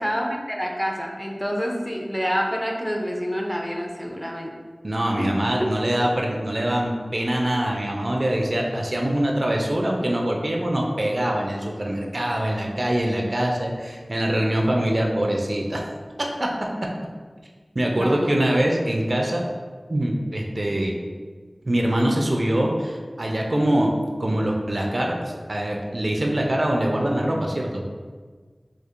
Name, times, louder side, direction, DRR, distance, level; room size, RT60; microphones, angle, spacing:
voice 1, 0.0-4.5 5.2-5.3 5.6-5.7 17.9-18.4, equal, 5° left, 0 dB, 0.5 m, -27 dB
voice 2, 4.8-15.9 16.4-16.5 16.8-16.9 17.8-19.4 19.9-20.9 21.7-23.9 24.2-27.8, right 1 dB, 55° right, 0 dB, 0.4 m, -23 dB
4.4 x 2.4 x 2.5 m, 1.5 s
wide cardioid pair, 45°, 0 cm